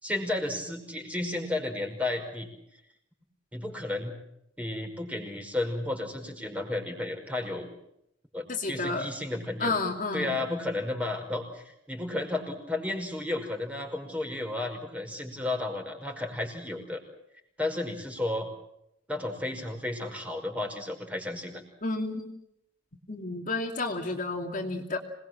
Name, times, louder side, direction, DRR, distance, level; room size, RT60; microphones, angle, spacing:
voice 1, 0.0-2.5 3.5-4.1 4.6-7.7 8.3-9.7 10.1-17.0 17.6-18.5 19.1-21.6, left 2 dB, 10° right, 3 dB, 5.3 m, -33 dB
voice 2, 8.5-9.1 9.6-10.4 21.8-22.3 23.1-25.0, left 3 dB, 45° left, 3 dB, 2.7 m, -31 dB
26.5 x 20.5 x 7.6 m, 0.79 s
head